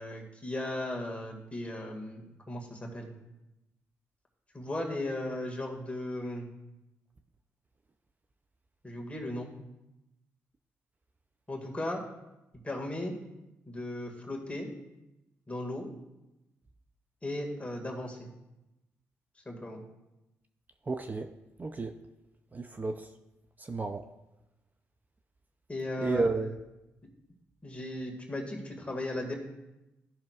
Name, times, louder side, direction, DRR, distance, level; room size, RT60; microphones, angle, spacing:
voice 1, 0.0-3.1 4.5-6.5 8.8-9.5 11.5-12.0 12.6-13.1 13.7-14.7 15.5-15.9 17.2-18.3 19.5-19.8 25.7-26.3 27.6-29.4, left 1 dB, 25° left, 1 dB, 1.9 m, -36 dB
voice 2, 20.9-21.3 21.6-21.9 22.5-23.1 23.6-24.1 26.0-26.5, right 3 dB, 30° right, 7 dB, 0.5 m, -31 dB
14.0 x 5.8 x 2.4 m, 0.96 s
supercardioid pair, 65°, 6 cm